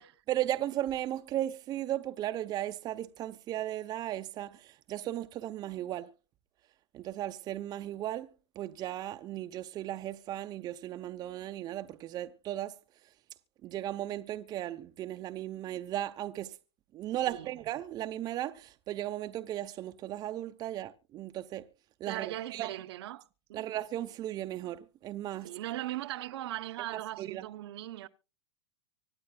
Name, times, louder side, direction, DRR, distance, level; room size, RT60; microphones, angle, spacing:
voice 1, 0.0-6.1 6.9-12.7 13.6-16.6 16.9-21.7 22.0-22.7 23.5-25.5 26.9-27.5, right 13 dB, 25° right, 0.7 m, -36 dB
voice 2, 22.1-23.7 25.4-28.1, right 15 dB, 65° right, 0.9 m, -39 dB
25.0 x 8.4 x 2.2 m
hypercardioid pair, 130°, 15 cm